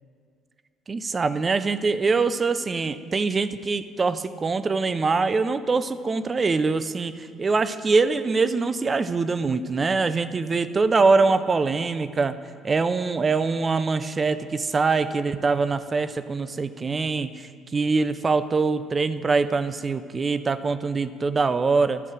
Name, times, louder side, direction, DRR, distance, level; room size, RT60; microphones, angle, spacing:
voice 1, 0.9-12.3 12.6-22.0, right 4 dB, 35° right, 13 dB, 0.4 m, -23 dB
11.5 x 5.3 x 6.2 m, 2.2 s
hypercardioid pair, 55°, 0 cm